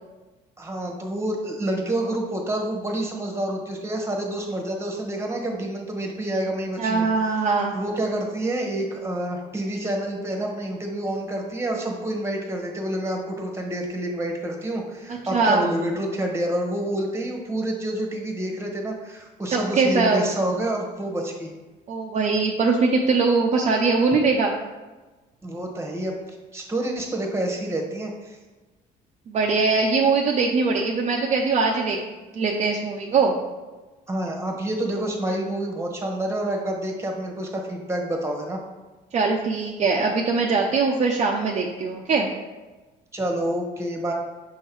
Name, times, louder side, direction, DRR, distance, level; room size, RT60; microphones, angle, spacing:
voice 1, 0.6-7.5 7.7-21.5 25.4-26.2 26.5-28.4 34.1-38.6 43.1-44.1, right 1 dB, 15° right, 1 dB, 1.1 m, -28 dB
voice 2, 6.8-7.7 15.3-15.6 19.5-20.3 21.9-24.5 29.3-32.0 32.3-33.3 39.1-42.3, right 4 dB, 40° right, 0 dB, 0.6 m, -21 dB
6.3 x 3.7 x 4.5 m, 1.2 s
cardioid pair, 110°, 17 cm